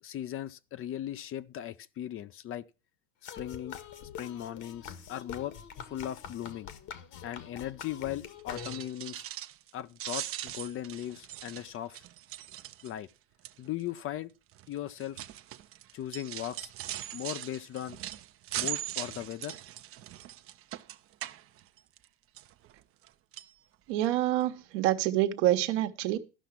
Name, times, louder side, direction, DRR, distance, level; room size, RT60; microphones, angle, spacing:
voice 1, 0.0-2.7 3.3-3.8 4.2-5.5 5.8-6.7 7.2-9.2 9.7-12.0 12.8-13.1 13.6-14.3 14.7-15.2 15.9-16.7 17.1-18.0 18.6-19.6, left 12 dB, 35° left, 0.6 m, -38 dB
sound 1, 3.2-9.1, left 8 dB, 50° left, 1.6 m, -45 dB
sound 2, 8.4-9.7 10.0-13.1 13.4-13.8 14.5-22.1 22.4-23.1 23.3-23.5 24.0-24.1 24.4-24.5, right 13 dB, 35° right, 0.7 m, -40 dB
voice 2, 23.9-26.2, right 14 dB, 70° right, 1.3 m, -27 dB
13.5 x 5.8 x 5.8 m
hypercardioid pair, 95°, 38 cm